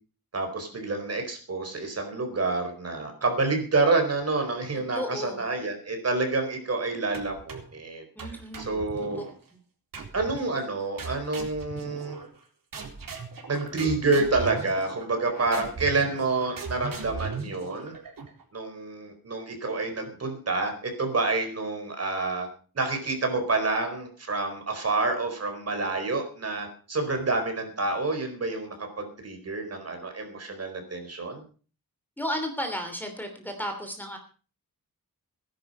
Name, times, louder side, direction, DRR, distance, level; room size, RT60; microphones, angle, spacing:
voice 1, 0.3-8.0 8.6-9.2 10.1-12.2 13.5-17.9 18.5-22.5 22.7-31.4, right 3 dB, 45° right, 5 dB, 4.5 m, -28 dB
voice 2, 4.9-5.4 8.1-9.2 32.2-34.2, equal, 5° left, 5 dB, 3.0 m, -34 dB
sound 1, 7.1-7.8 8.2-9.4 9.9-10.5 11.0-12.4 12.7-18.4, right 4 dB, 65° right, 4.0 m, -38 dB
18.5 x 11.0 x 5.5 m, 0.40 s
wide cardioid pair, 155°, 36 cm